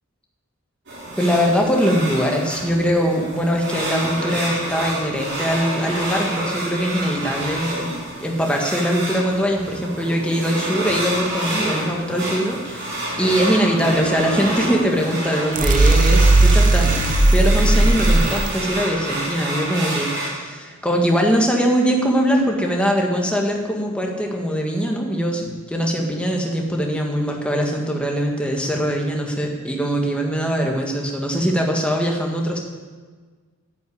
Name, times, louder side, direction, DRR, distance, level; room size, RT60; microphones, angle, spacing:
sound 1, 0.9-20.3, right 1 dB, 50° right, 5.3 m, -28 dB
voice 1, 1.2-7.9 8.2-32.6, equal, 5° left, 0 dB, 1.7 m, -22 dB
sound 2, 15.5-18.5, right 2 dB, 35° right, 0.8 m, -15 dB
10.5 x 9.9 x 8.6 m, 1.5 s
head